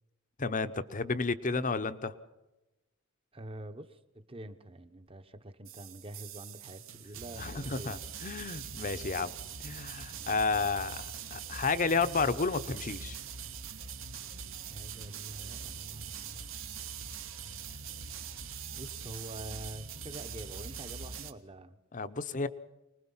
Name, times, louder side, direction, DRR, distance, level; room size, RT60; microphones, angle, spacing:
voice 1, 0.4-2.1 7.4-9.3 9.6-13.2 21.9-22.5, left 4 dB, 35° left, 13 dB, 0.9 m, -32 dB
voice 2, 3.3-8.0 10.1-10.7 14.6-16.5 18.7-21.8, right 1 dB, 25° right, 10 dB, 1.1 m, -46 dB
sound 1, 5.7-21.3, right 6 dB, 65° right, 1.3 m, -42 dB
25.0 x 20.0 x 5.7 m, 1.0 s
head